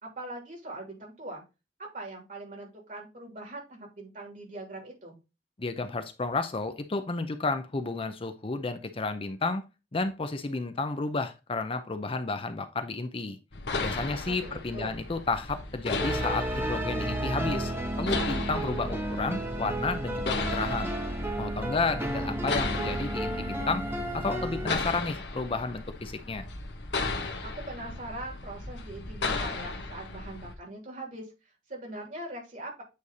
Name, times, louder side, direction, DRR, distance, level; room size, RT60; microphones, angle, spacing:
voice 1, 0.0-1.4 1.8-5.2 14.3-15.0 27.4-32.8, right 1 dB, 50° right, 0 dB, 3.0 m, -41 dB
voice 2, 5.6-9.6 9.9-13.4 13.8-17.7 18.0-20.9 21.4-23.8 24.1-26.5, left 3 dB, 30° left, 9 dB, 0.6 m, -32 dB
sound 1, 13.5-30.5, left 3 dB, 75° left, 1.2 m, -36 dB
sound 2, 16.0-24.7, right 1 dB, 15° right, 1.1 m, -32 dB
8.6 x 3.3 x 4.1 m, 0.28 s
head